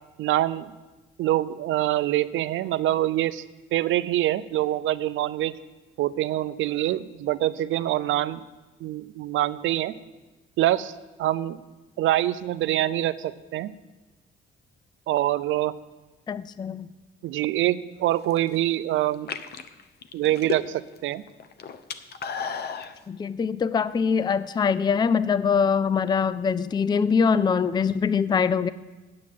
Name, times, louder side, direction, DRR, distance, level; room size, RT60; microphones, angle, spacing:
voice 1, 0.2-0.7 1.2-3.4 3.7-5.6 6.0-8.4 8.8-9.9 10.6-10.9 11.2-11.6 12.0-13.7 15.1-15.8 17.2-19.3 20.1-21.2, right 14 dB, 80° right, 16 dB, 0.5 m, -25 dB
voice 2, 16.3-16.9 23.1-28.7, left 6 dB, 20° left, 16 dB, 0.4 m, -23 dB
sound 1, 18.1-18.6 19.1-21.0 21.3-22.9, left 6 dB, 55° left, 0.8 m, -34 dB
9.7 x 8.6 x 7.5 m, 1.1 s
cardioid pair, 90°, 20 cm